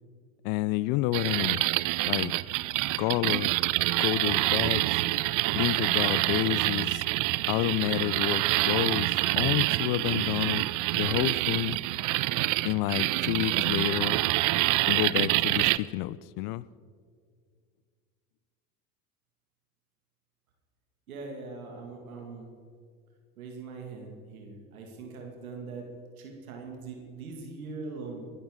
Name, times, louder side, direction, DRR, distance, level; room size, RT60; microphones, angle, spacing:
voice 1, 0.4-1.6 2.1-2.3 3.0-3.5 4.0-4.8 5.6-7.0 7.5-10.6 10.9-11.8 12.6-14.2 14.9-16.6, left 17 dB, 60° left, 0.5 m, -29 dB
sound 1, 1.1-15.8, right 18 dB, 50° right, 0.5 m, -27 dB
voice 2, 21.1-22.5 23.4-25.9 26.2-28.3, right 4 dB, 85° right, 2.1 m, -41 dB
22.5 x 12.5 x 3.7 m
hypercardioid pair, 70°, 41 cm